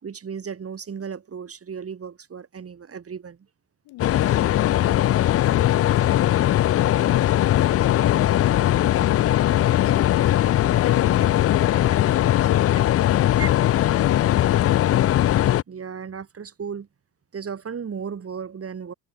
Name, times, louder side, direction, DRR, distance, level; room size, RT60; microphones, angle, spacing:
voice 1, 0.0-3.4 13.4-13.5 15.7-16.9 17.3-18.9, right 6 dB, 40° right, 7.1 m, -35 dB
voice 2, 3.8-6.3 7.1-10.3 10.8-15.1, left 19 dB, 85° left, 3.3 m, -36 dB
sound 1, 4.0-15.6, left 13 dB, 40° left, 0.4 m, -19 dB
cardioid pair, 100°, 37 cm